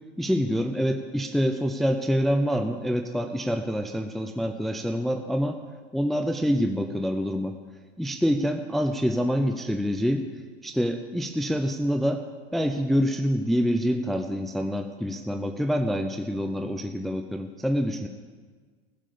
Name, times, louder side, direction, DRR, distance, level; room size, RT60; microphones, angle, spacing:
voice 1, 0.2-5.6 5.9-7.5 8.0-10.2 10.6-12.2 12.5-18.1, equal, ahead, 5 dB, 0.6 m, -26 dB
16.0 x 7.3 x 6.9 m, 1.5 s
hypercardioid pair, 90°, 34 cm